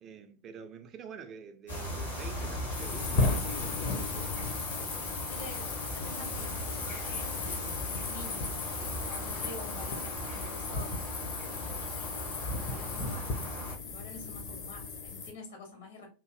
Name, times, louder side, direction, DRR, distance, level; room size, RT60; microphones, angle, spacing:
voice 1, 0.0-4.7, right 6 dB, 30° right, 0.4 m, -47 dB
sound 1, 1.7-13.8, equal, 75° left, 1.4 m, -39 dB
sound 2, 2.7-15.3, left 3 dB, 40° left, 0.7 m, -35 dB
voice 2, 5.3-8.5 9.0-11.2 11.4-12.0 12.4-13.3 13.8-16.1, left 2 dB, 60° left, 1.0 m, -48 dB
2.9 x 2.5 x 2.4 m
figure-of-eight pair, 90°, 0 cm